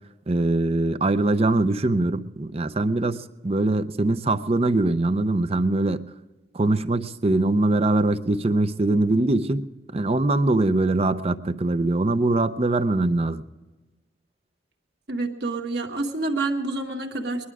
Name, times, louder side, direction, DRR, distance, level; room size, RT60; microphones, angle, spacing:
voice 1, 0.3-6.0 6.5-9.7 9.9-13.4, right 2 dB, 35° right, 0.6 m, -22 dB
voice 2, 15.1-17.5, right 2 dB, 65° right, 1.8 m, -28 dB
21.0 x 11.5 x 4.9 m
head